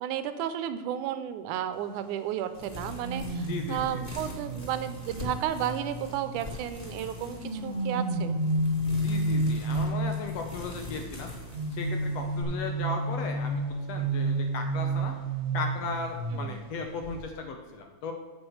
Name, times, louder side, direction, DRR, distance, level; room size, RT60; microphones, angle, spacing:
voice 1, 0.0-8.4 16.3-16.6, right 10 dB, 85° right, 11 dB, 2.1 m, -33 dB
sound 1, 2.5-12.4, left 2 dB, 15° left, 2.2 m, -42 dB
sound 2, 3.0-6.6 7.2-10.5 11.5-16.7 17.0-17.3, right 2 dB, 40° right, 1.0 m, -31 dB
voice 2, 3.5-4.0 8.9-11.3 11.7-15.1 15.5-18.1, left 4 dB, 70° left, 4 dB, 1.8 m, -36 dB
7.9 x 6.3 x 6.3 m, 1.4 s
omnidirectional pair, 3.6 m